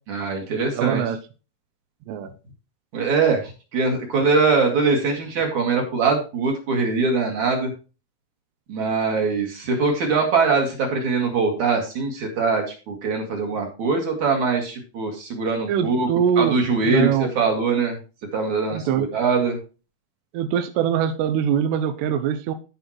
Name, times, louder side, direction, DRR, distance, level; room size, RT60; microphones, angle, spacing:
voice 1, 0.1-1.0 2.9-7.7 8.7-16.1 16.4-18.0 18.3-19.6, right 4 dB, 55° right, 2.8 m, -22 dB
voice 2, 0.7-1.2 2.1-2.3 15.7-16.6 16.8-17.3 18.7-19.1 20.3-22.5, right 8 dB, 90° right, 2.9 m, -22 dB
14.0 x 5.7 x 3.0 m
omnidirectional pair, 4.7 m